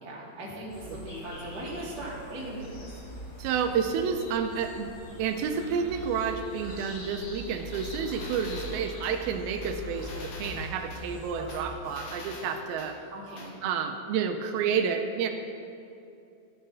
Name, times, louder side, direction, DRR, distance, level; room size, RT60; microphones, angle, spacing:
voice 1, 0.0-2.7 11.3-11.5 13.1-13.5, right 1 dB, 40° right, -6 dB, 1.8 m, -39 dB
sound 1, 0.7-11.7, equal, 60° left, 2.7 m, -42 dB
voice 2, 3.4-4.9 5.2-13.0 13.6-15.3, right 6 dB, 85° right, 6 dB, 2.5 m, -30 dB
sound 2, 7.7-9.2 9.6-11.0 11.5-12.9 13.4-13.5, left 3 dB, 75° left, 1.4 m, -44 dB
13.0 x 5.6 x 3.9 m, 2.6 s
omnidirectional pair, 4.2 m